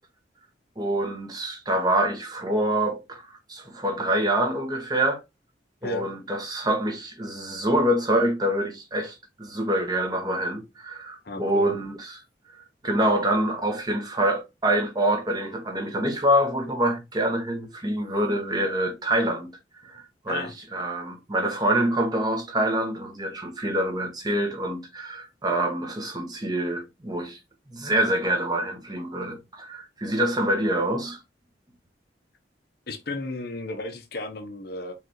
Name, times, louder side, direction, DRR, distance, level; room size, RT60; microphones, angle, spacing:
voice 1, 0.8-5.2 5.8-12.2 12.8-19.5 19.8-27.4 27.7-31.2, right 1 dB, 20° right, 1.1 m, -26 dB
voice 2, 11.2-11.7 20.3-20.5 32.9-34.9, left 2 dB, 60° left, 0.9 m, -33 dB
4.8 x 3.4 x 3.0 m
head